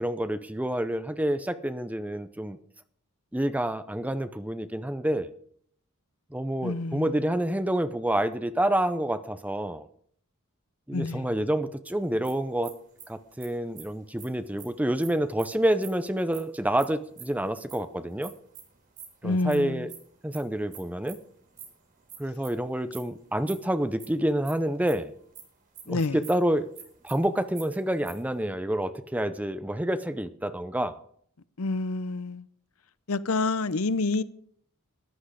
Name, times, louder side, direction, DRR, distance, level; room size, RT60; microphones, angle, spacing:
voice 1, 0.0-2.6 3.3-5.3 6.3-9.9 10.9-12.7 13.1-18.3 19.2-19.9 20.2-21.2 22.2-25.1 25.9-26.7 27.0-31.0, right 1 dB, 5° right, 0.6 m, -28 dB
voice 2, 6.6-7.3 10.9-11.3 19.2-19.9 25.9-26.2 31.6-32.5 33.1-34.2, left 3 dB, 75° left, 0.7 m, -28 dB
sound 1, 12.0-17.8 18.2-25.4 25.7-25.8 26.1-26.3 26.6-28.4, right 8 dB, 40° right, 3.6 m, -47 dB
14.0 x 10.5 x 5.0 m
head